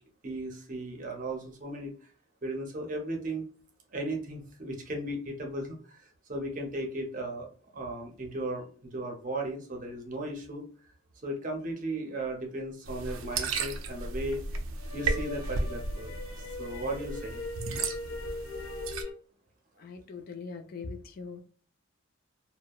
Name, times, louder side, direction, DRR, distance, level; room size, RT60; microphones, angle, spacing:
voice 1, 0.2-1.9 2.4-3.5 3.9-7.5 7.7-10.6 11.2-14.4 14.9-17.4, right 1 dB, 40° right, 2 dB, 0.6 m, -36 dB
sound 1, 12.8-14.4 14.8-19.1, left 3 dB, 85° left, 0.7 m, -41 dB
sound 2, 12.8-19.0, right 3 dB, 85° right, 0.4 m, -35 dB
voice 2, 19.8-21.4, left 4 dB, 45° left, 6 dB, 0.3 m, -41 dB
2.7 x 2.0 x 2.2 m, 0.43 s
head